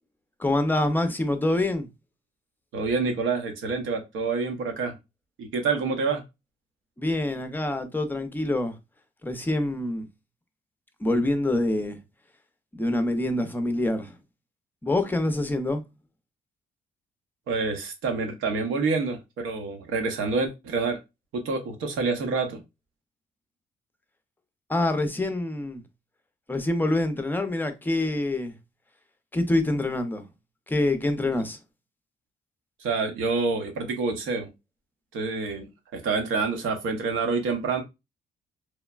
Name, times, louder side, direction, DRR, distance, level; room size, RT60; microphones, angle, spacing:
voice 1, 0.4-1.9 7.0-8.7 9.2-10.1 11.0-12.0 12.7-14.2 14.8-15.8 24.7-25.8 26.5-28.5 29.3-30.2 30.7-31.6, left 1 dB, 10° left, 0.5 m, -26 dB
voice 2, 2.7-4.9 5.4-6.2 17.5-21.0 21.3-22.6 32.8-34.5 35.1-37.8, right 4 dB, 85° right, 0.8 m, -27 dB
3.1 x 2.1 x 2.3 m
cardioid pair, 90°, 20 cm